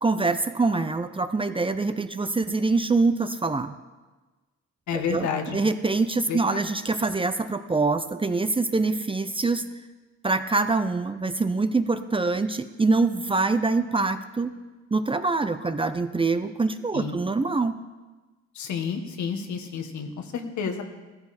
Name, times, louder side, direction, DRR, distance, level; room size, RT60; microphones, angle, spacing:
voice 1, 0.0-3.7 4.9-9.6 10.2-14.5 14.9-17.8, right 3 dB, 15° right, 10 dB, 0.6 m, -24 dB
voice 2, 4.9-5.6 6.3-6.4 16.9-17.2 18.5-20.8, left 6 dB, 70° left, 5 dB, 1.7 m, -30 dB
14.5 x 14.0 x 4.3 m, 1.2 s
cardioid pair, 90°, 30 cm